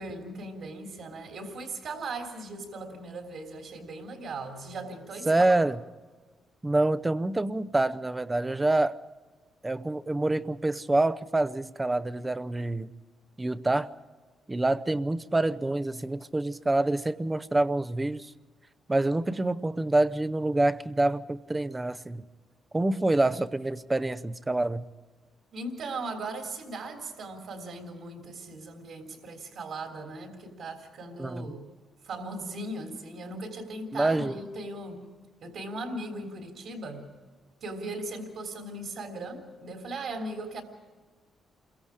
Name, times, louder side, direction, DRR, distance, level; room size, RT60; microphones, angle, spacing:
voice 1, 0.0-5.5 25.5-31.7 32.0-35.0 35.4-37.1 37.6-40.6, right 2 dB, 60° right, 2 dB, 3.2 m, -38 dB
voice 2, 5.3-5.8 6.6-9.0 9.6-12.9 13.4-13.9 14.5-18.3 18.9-22.2 22.7-24.8 31.2-31.5 33.9-34.3, right 2 dB, 10° right, 13 dB, 0.7 m, -26 dB
28.5 x 22.5 x 4.9 m, 1.3 s
cardioid pair, 155°, 0 cm